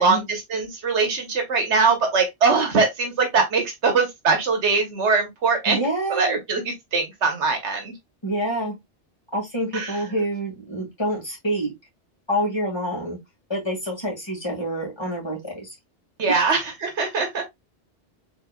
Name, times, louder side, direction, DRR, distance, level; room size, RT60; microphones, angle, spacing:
voice 1, 0.0-5.8 6.1-7.9 9.7-10.0 16.2-17.4, right 4 dB, 85° right, 1.4 m, -22 dB
voice 2, 5.7-6.4 8.2-8.7 9.3-11.7 12.3-13.2 13.5-15.7 16.3-16.5, right 1 dB, 25° left, 2.0 m, -27 dB
4.6 x 3.5 x 2.3 m
omnidirectional pair, 1.1 m